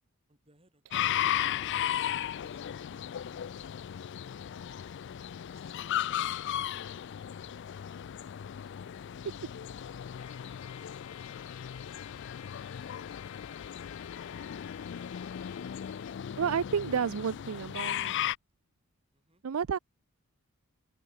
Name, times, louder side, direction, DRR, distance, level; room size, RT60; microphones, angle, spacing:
voice 1, 0.3-1.9 2.4-3.7 4.2-7.1 7.4-7.7 9.8-11.4 11.7-13.3 14.9-15.1 16.9-17.9 19.1-19.4, right 1 dB, 25° right, 7.3 m, -69 dB
sound 1, 0.9-18.3, left 10 dB, 55° left, 0.3 m, -36 dB
Trumpet, 10.2-16.3, left 11 dB, 85° left, 1.9 m, -53 dB
voice 2, 16.4-18.1 19.4-19.8, right 7 dB, 70° right, 0.4 m, -30 dB
open air
head